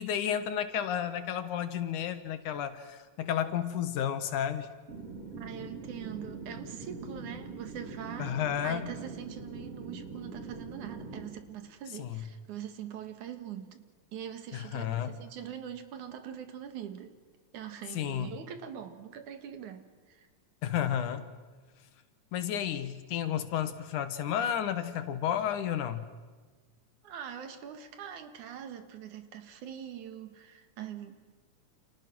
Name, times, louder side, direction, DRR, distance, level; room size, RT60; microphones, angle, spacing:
voice 1, 0.0-4.7 8.2-8.8 12.0-12.2 14.5-15.1 17.9-18.4 20.6-21.3 22.3-26.1, left 9 dB, 85° left, 10 dB, 2.9 m, -32 dB
sound 1, 4.9-11.3, right 4 dB, 50° right, 4.7 m, -43 dB
voice 2, 5.3-17.2 17.5-20.3 27.0-31.2, right 9 dB, 80° right, 8 dB, 3.1 m, -43 dB
29.5 x 28.5 x 6.2 m, 1.4 s
omnidirectional pair, 3.4 m